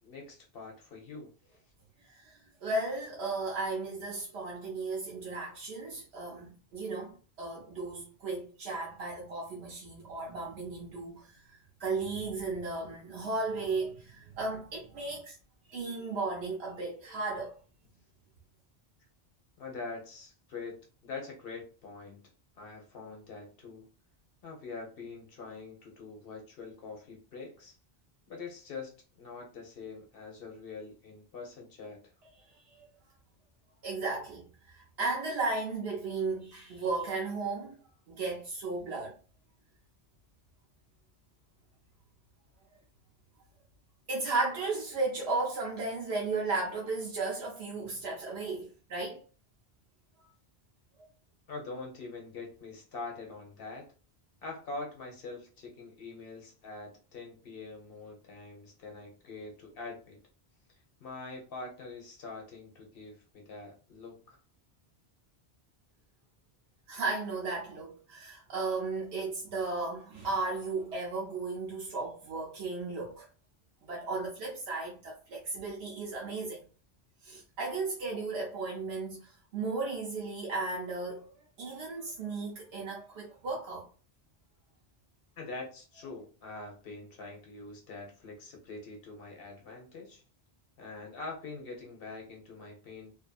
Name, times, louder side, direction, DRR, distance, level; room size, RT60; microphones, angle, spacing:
voice 1, 0.0-1.6 19.6-22.2 22.6-23.9 24.4-27.8 28.3-32.0 51.5-53.9 54.4-60.2 61.0-64.4 85.4-90.2 90.8-93.1, left 3 dB, 65° left, 0.9 m, -44 dB
voice 2, 2.0-15.4 15.7-17.5 32.3-32.9 33.8-37.8 38.1-39.1 44.1-49.2 66.9-73.3 73.8-76.6 77.2-81.3 81.6-83.9, right 3 dB, 85° right, 1.0 m, -35 dB
2.7 x 2.5 x 2.3 m
omnidirectional pair, 1.1 m